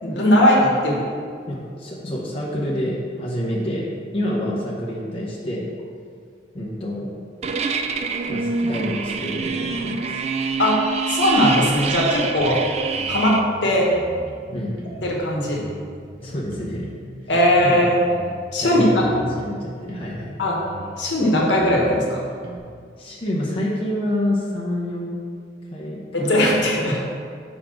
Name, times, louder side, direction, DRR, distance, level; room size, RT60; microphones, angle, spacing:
voice 1, 0.0-1.0 10.6-10.8 11.1-12.6 13.1-13.9 15.0-15.6 17.3-18.0 18.5-18.8 20.4-20.6 21.0-22.2 26.1-27.0, left 1 dB, 70° left, -3 dB, 1.2 m, -19 dB
voice 2, 1.5-3.9 4.1-5.7 6.5-7.1 8.3-10.2 14.5-14.7 16.2-16.9 17.6-17.8 18.6-20.4 23.0-25.2 25.7-26.4, left 1 dB, 30° left, -6 dB, 0.8 m, -27 dB
sound 1, 7.4-13.4, right 5 dB, 35° right, 0.3 m, -26 dB
sound 2, 12.4-12.7 13.0-15.2 15.6-17.8 18.1-20.3 20.7-22.6, equal, 75° right, 0.9 m, -39 dB
5.0 x 4.1 x 5.9 m, 2.2 s
head